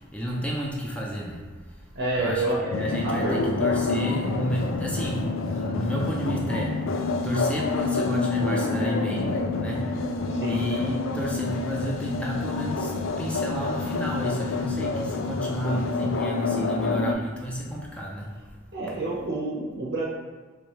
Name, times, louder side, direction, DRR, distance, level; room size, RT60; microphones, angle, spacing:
voice 1, 0.0-1.9 2.2-10.2 10.4-18.6 18.9-19.0, equal, 5° left, -3 dB, 0.5 m, -31 dB
voice 2, 1.9-3.3 10.3-10.6 15.6-15.8 18.7-20.0, right 2 dB, 55° right, -5 dB, 0.7 m, -29 dB
sound 1, 2.7-17.1, left 3 dB, 65° left, 0.4 m, -28 dB
4.9 x 3.1 x 3.0 m, 1.4 s
head